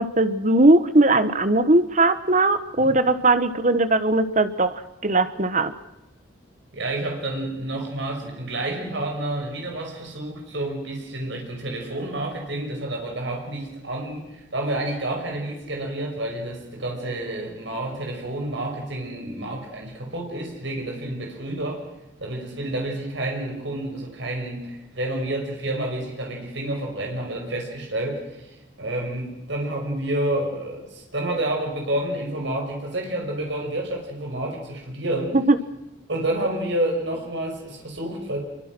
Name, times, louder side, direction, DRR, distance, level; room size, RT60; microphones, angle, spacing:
voice 1, 0.0-5.7 35.3-35.6, right 2 dB, 40° right, 12 dB, 1.3 m, -19 dB
voice 2, 6.7-21.8 22.2-35.4 36.1-38.4, right 1 dB, 65° right, 1 dB, 5.9 m, -29 dB
25.5 x 23.5 x 6.2 m, 0.94 s
head